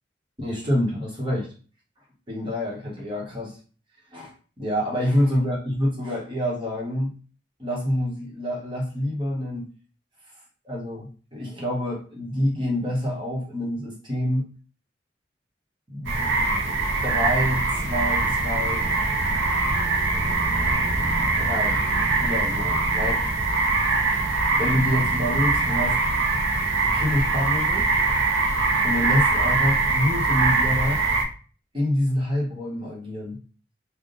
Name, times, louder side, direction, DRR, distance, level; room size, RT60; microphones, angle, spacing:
voice 1, 0.4-1.5 2.3-3.6 4.1-7.1 7.6-9.7 10.6-14.5 15.9-16.7 17.0-18.8 21.0-21.9 22.2-23.2 24.6-26.0 26.7-28.0 28.8-31.0 31.7-33.4, left 1 dB, 25° right, -3 dB, 1.3 m, -27 dB
sound 1, 16.0-31.2, right 3 dB, 85° right, 0.8 m, -23 dB
3.7 x 2.4 x 4.0 m, 0.38 s
head